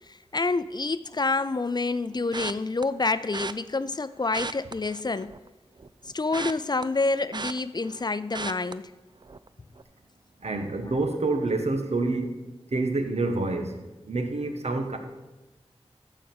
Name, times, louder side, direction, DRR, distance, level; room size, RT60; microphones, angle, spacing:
voice 1, 0.1-5.3 6.1-8.9, left 3 dB, 40° left, 0.4 m, -28 dB
sound 1, 2.3-2.8 3.3-3.5 4.2-5.5 5.8-8.0 8.3-8.7 9.2-9.5 9.8-9.9, right 4 dB, 45° right, 0.4 m, -36 dB
voice 2, 10.4-12.4 12.7-13.8 14.0-15.0, right 2 dB, 90° right, 1.1 m, -27 dB
14.5 x 4.9 x 6.1 m
wide cardioid pair, 70°, 11 cm